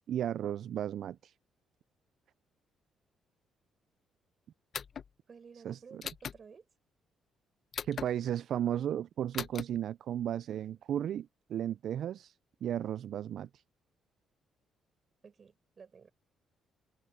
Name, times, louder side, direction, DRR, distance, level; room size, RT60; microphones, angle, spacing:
voice 1, 0.0-1.3 5.6-6.0 7.8-12.3 12.6-13.5, right 10 dB, 65° right, 0.4 m, -34 dB
sound 1, 4.7-5.1 6.0-6.4 7.7-8.1 9.3-9.6, left 7 dB, 55° left, 1.4 m, -38 dB
voice 2, 5.3-6.7 10.5-10.8 15.2-16.1, right 6 dB, 45° right, 7.7 m, -54 dB
supercardioid pair, 60°, 0 cm